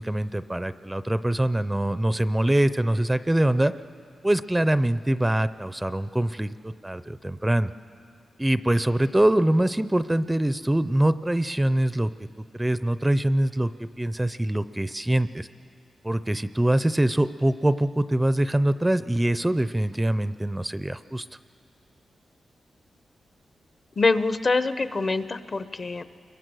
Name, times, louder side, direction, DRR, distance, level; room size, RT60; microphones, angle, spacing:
voice 1, 0.0-3.7 4.2-7.7 8.4-12.1 12.5-13.7 14.0-15.5 16.0-21.3, right 1 dB, 10° right, 13 dB, 0.5 m, -24 dB
voice 2, 24.0-26.0, left 3 dB, 45° left, 12 dB, 0.8 m, -24 dB
29.5 x 22.5 x 6.3 m, 2.5 s
cardioid pair, 90°, 0 cm